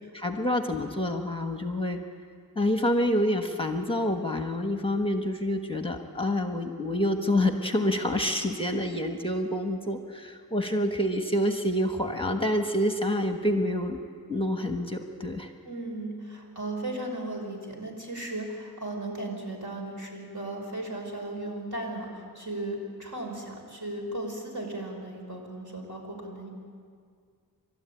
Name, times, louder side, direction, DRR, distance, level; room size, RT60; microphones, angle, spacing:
voice 1, 0.1-2.0 2.5-14.0 14.3-15.5, left 1 dB, 15° left, 4 dB, 1.4 m, -27 dB
voice 2, 15.6-26.5, right 1 dB, 55° right, 1 dB, 5.7 m, -36 dB
29.0 x 13.5 x 9.1 m, 2.1 s
wide cardioid pair, 85°, 37 cm